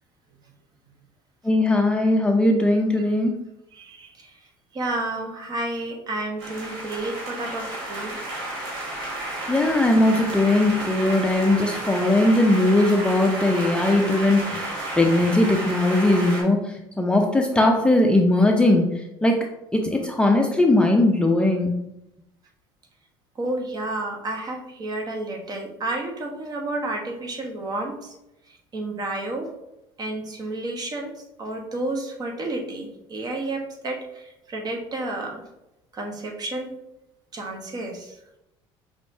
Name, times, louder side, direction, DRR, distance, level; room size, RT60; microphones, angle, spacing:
voice 1, 1.4-3.3 9.5-14.7 15.0-16.6 17.0-18.9 19.2-19.4 19.7-21.7, left 1 dB, 10° left, 1 dB, 0.5 m, -19 dB
voice 2, 3.7-4.4 4.7-8.2 23.4-28.1 28.5-29.5 30.0-35.4 35.9-36.7 37.3-38.2, right 2 dB, 35° right, 2 dB, 1.0 m, -31 dB
sound 1, 6.4-16.4, right 1 dB, 90° right, 1.6 m, -32 dB
5.3 x 3.3 x 2.6 m, 0.89 s
cardioid pair, 105°, 11 cm